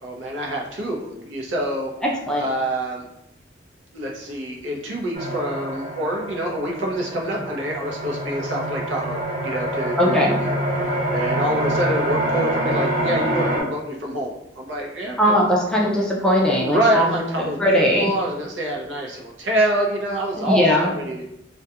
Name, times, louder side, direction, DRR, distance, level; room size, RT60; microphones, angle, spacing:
voice 1, 0.0-1.9 2.4-3.1 3.9-10.6 10.9-15.3 16.6-21.2, right 1 dB, 80° right, -1 dB, 0.6 m, -26 dB
sound 1, 5.1-13.6, right 1 dB, 40° right, 0.7 m, -26 dB
voice 2, 10.0-10.3 15.2-18.1 20.4-20.9, equal, 5° left, -3 dB, 0.4 m, -19 dB
2.3 x 2.2 x 2.7 m, 0.84 s
head